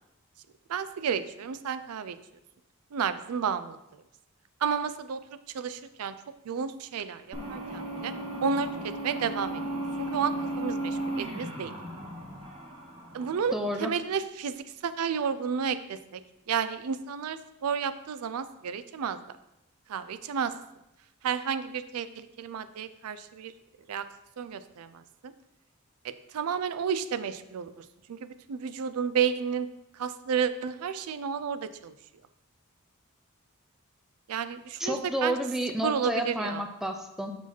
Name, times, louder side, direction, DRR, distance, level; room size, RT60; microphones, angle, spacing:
voice 1, 0.7-2.2 2.9-3.8 4.6-5.2 5.5-6.1 6.4-8.1 8.4-9.6 10.0-11.7 13.1-13.5 13.8-16.2 16.5-19.2 19.9-20.5 21.2-23.5 23.9-24.1 24.4-25.3 26.3-29.7 29.9-31.9 34.3-35.0 35.2-35.4 35.8-36.6, right 7 dB, 90° right, 13 dB, 0.4 m, -31 dB
sound 1, 7.3-13.7, right 1 dB, 25° right, 1.1 m, -35 dB
voice 2, 13.5-13.9 34.8-37.3, equal, ahead, 4 dB, 0.5 m, -30 dB
5.7 x 4.7 x 4.3 m, 0.90 s
head